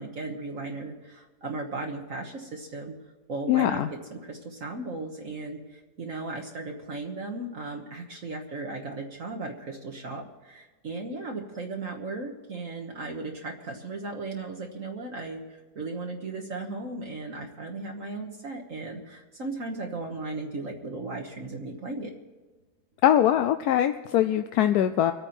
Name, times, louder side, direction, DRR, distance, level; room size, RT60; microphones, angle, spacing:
voice 1, 0.0-3.0 3.3-22.1, right 3 dB, 55° right, 0 dB, 1.7 m, -36 dB
voice 2, 3.5-3.9 23.0-25.1, left 11 dB, 80° left, 9 dB, 1.1 m, -22 dB
25.5 x 9.0 x 4.4 m, 1.3 s
omnidirectional pair, 1.7 m